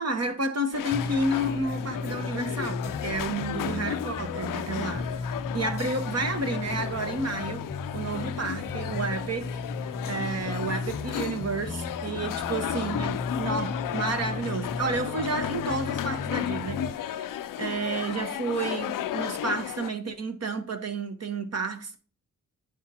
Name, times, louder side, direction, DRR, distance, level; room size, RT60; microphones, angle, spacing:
voice 1, 0.0-7.7 7.9-9.6 9.8-17.3 17.6-22.0, right 2 dB, 50° right, 1.2 m, -31 dB
sound 1, 0.7-19.9, left 11 dB, 80° left, 0.5 m, -34 dB
sound 2, 0.9-16.9, left 3 dB, 25° left, 0.7 m, -36 dB
10.0 x 5.0 x 2.9 m
cardioid pair, 55°, 32 cm